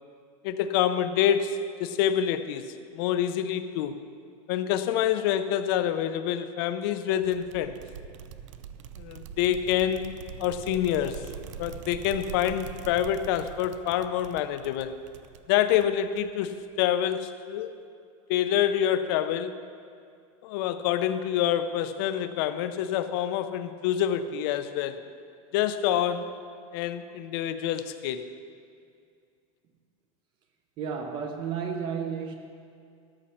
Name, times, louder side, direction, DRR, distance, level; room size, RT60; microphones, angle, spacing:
voice 1, 0.4-4.0 4.5-7.8 9.0-10.1 10.4-11.2 11.6-14.9 15.5-17.7 18.3-19.6 20.4-25.0 25.5-26.4 26.7-28.3, left 10 dB, 45° left, 11 dB, 0.6 m, -27 dB
sound 1, 7.2-16.5, right 8 dB, 65° right, 0.6 m, -43 dB
voice 2, 30.8-32.3, right 6 dB, 25° right, 4 dB, 0.7 m, -32 dB
14.0 x 11.0 x 4.3 m, 2.3 s
supercardioid pair, 175°, 17 cm